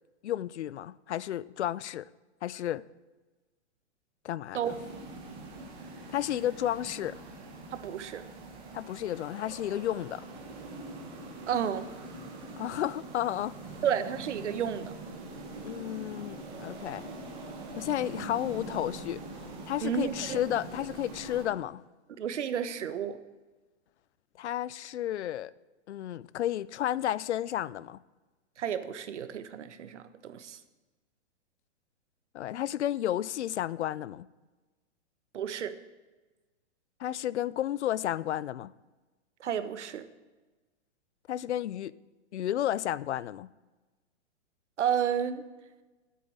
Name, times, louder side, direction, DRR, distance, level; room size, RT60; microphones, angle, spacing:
voice 1, 0.2-2.1 2.4-2.8 4.2-4.7 6.1-7.2 8.7-10.2 12.6-13.5 15.6-17.1 17.8-19.2 19.7-21.8 24.4-25.5 25.9-28.0 32.3-34.3 37.0-38.7 41.3-41.9 42.3-43.5, left 12 dB, 70° left, 0.6 m, -32 dB
sound 1, 4.6-21.5, right 2 dB, 15° right, 1.3 m, -44 dB
voice 2, 7.7-8.2 11.5-11.9 13.8-14.9 19.8-20.4 22.2-23.2 28.6-30.6 35.3-35.8 39.4-40.1 44.8-45.4, right 8 dB, 80° right, 1.3 m, -31 dB
10.0 x 8.5 x 8.7 m
hypercardioid pair, 180°, 35 cm